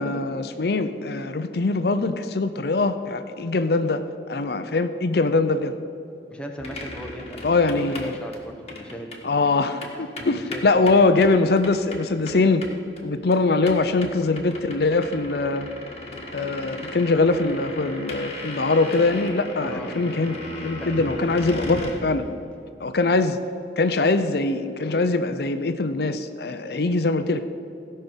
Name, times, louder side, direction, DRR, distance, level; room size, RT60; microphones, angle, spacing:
voice 1, 0.0-4.0 4.3-5.7 7.4-8.1 9.2-12.6 13.0-15.7 16.3-22.2 22.8-23.4 23.8-27.4, left 3 dB, 60° left, 10 dB, 0.5 m, -22 dB
voice 2, 6.3-9.3 9.8-11.3 19.6-20.0 20.8-22.4, equal, 5° left, 2 dB, 1.0 m, -38 dB
sound 1, 6.6-9.2 9.5-9.6 9.8-13.0 13.3-13.4 13.7-21.9, left 1 dB, 35° left, 1.6 m, -36 dB
16.5 x 5.5 x 7.2 m, 2.7 s
head